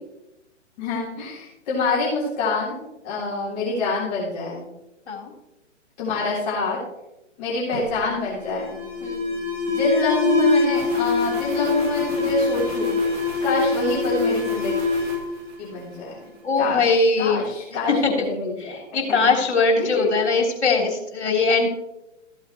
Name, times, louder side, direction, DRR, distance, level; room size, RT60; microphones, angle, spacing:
voice 1, 0.8-4.6 6.0-6.8 7.4-8.7 9.7-12.9 13.4-14.7 15.6-16.2 16.6-18.8 19.1-19.3 19.8-20.2, left 2 dB, 35° left, -7 dB, 3.5 m, -26 dB
Alarm, 7.7-16.3, left 4 dB, 30° right, 2.6 m, -24 dB
voice 2, 9.0-9.3 16.4-17.5 17.9-18.3 18.6-21.7, left 3 dB, 60° left, 1 dB, 3.4 m, -21 dB
15.0 x 8.3 x 2.9 m, 0.92 s
figure-of-eight pair, 130°, 37 cm